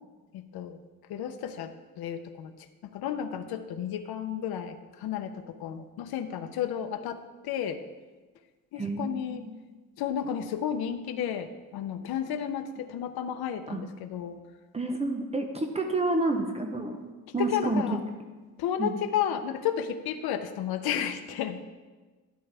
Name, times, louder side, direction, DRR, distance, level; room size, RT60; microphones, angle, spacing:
voice 1, 0.3-0.8 1.1-2.5 2.9-7.8 8.7-9.5 10.0-14.4 17.4-18.0 18.6-21.6, left 9 dB, 80° left, 7 dB, 0.7 m, -32 dB
voice 2, 8.7-9.5 13.7-13.8 14.7-17.0 17.3-17.8 18.8-19.0, right 2 dB, 15° right, 4 dB, 0.7 m, -29 dB
12.5 x 11.0 x 3.4 m, 1.3 s
cardioid pair, 160°, 36 cm